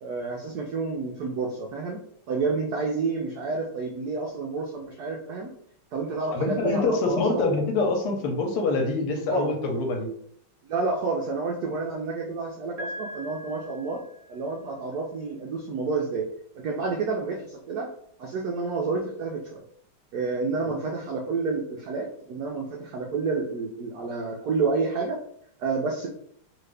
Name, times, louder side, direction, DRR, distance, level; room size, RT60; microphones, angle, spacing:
voice 1, 0.0-5.5 5.9-7.5 9.3-9.5 10.6-14.0 14.3-16.3 16.6-17.9 18.2-19.6 20.1-25.2 25.6-26.1, right 4 dB, 85° right, 0 dB, 0.8 m, -29 dB
voice 2, 6.3-10.1, left 3 dB, 85° left, 3 dB, 1.6 m, -25 dB
Piano, 12.8-14.7, left 1 dB, 30° right, 0.5 m, -41 dB
3.7 x 2.5 x 3.2 m, 0.66 s
omnidirectional pair, 2.4 m